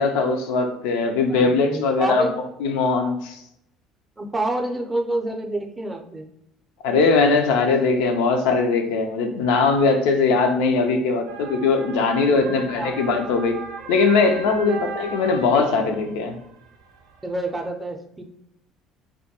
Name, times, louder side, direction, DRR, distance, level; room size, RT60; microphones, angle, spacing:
voice 1, 0.0-2.3 2.6-3.4 6.8-13.6 13.9-16.4, left 4 dB, 75° left, 4 dB, 0.3 m, -20 dB
voice 2, 1.3-2.3 4.2-6.3 12.3-12.9 14.6-14.8 17.2-18.2, right 2 dB, 20° right, 3 dB, 0.5 m, -28 dB
sound 1, 11.3-17.7, right 5 dB, 80° right, 0.4 m, -38 dB
2.2 x 2.2 x 2.7 m, 0.76 s
hypercardioid pair, 65°, 0 cm